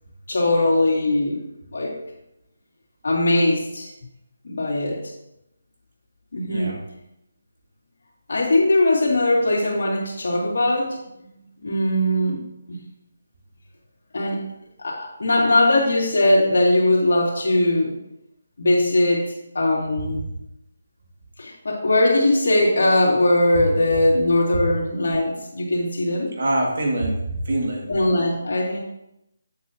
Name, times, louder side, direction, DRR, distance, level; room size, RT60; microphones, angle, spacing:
voice 1, 0.3-1.4 1.7-2.0 3.0-3.9 4.4-5.0 6.3-6.7 8.3-11.0 11.6-12.4 12.7-12.8 14.1-14.4 14.8-17.9 18.6-20.2 21.4-26.3 27.9-28.8, left 1 dB, 70° left, -4 dB, 2.7 m, -20 dB
voice 2, 6.5-6.8 20.0-20.1 24.5-24.6 26.4-27.9, right 1 dB, 60° right, -1 dB, 2.3 m, -24 dB
8.5 x 7.5 x 3.0 m, 0.85 s
figure-of-eight pair, 160°, 0 cm